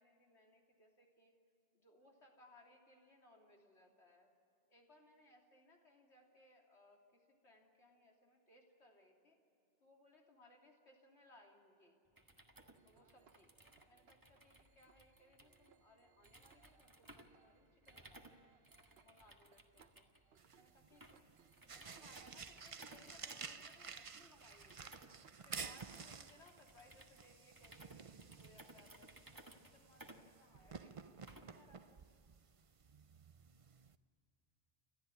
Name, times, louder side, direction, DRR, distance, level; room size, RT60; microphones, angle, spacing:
voice 1, 0.0-1.4 1.7-4.3 4.7-9.4 9.8-12.0 12.8-13.5 13.9-20.0 20.5-21.3 21.6-25.0 25.4-32.0, left 1 dB, 75° left, 0 dB, 3.4 m, -67 dB
sound 1, 12.1-31.7, right 1 dB, 20° right, 1.6 m, -62 dB
sound 2, 12.5-28.9, right 7 dB, 65° right, 1.1 m, -73 dB
sound 3, 20.4-34.0, right 5 dB, 35° right, 0.6 m, -53 dB
29.5 x 13.5 x 9.8 m, 2.8 s
omnidirectional pair, 1.1 m